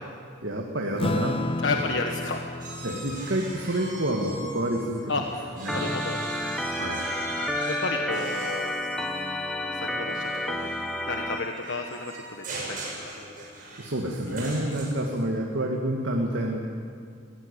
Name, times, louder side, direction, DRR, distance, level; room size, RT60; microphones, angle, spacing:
voice 1, 0.4-1.4 1.8-2.0 2.8-5.0 5.6-5.8 6.7-7.1 13.8-16.6, right 1 dB, 80° right, 0 dB, 2.1 m, -28 dB
Acoustic guitar / Strum, 1.0-5.8, left 2 dB, 30° left, 0.5 m, -34 dB
voice 2, 1.6-2.4 5.1-5.2 5.7-6.2 7.7-8.7 9.7-10.7 11.1-12.8 14.3-14.7, left 3 dB, 70° left, 3 dB, 1.3 m, -32 dB
sound 1, 2.6-5.0 5.3-15.2, right 1 dB, 45° right, 7.0 m, -39 dB
Organ, 5.7-11.4, left 1 dB, ahead, 1.2 m, -30 dB
23.0 x 17.0 x 8.4 m, 2.1 s
head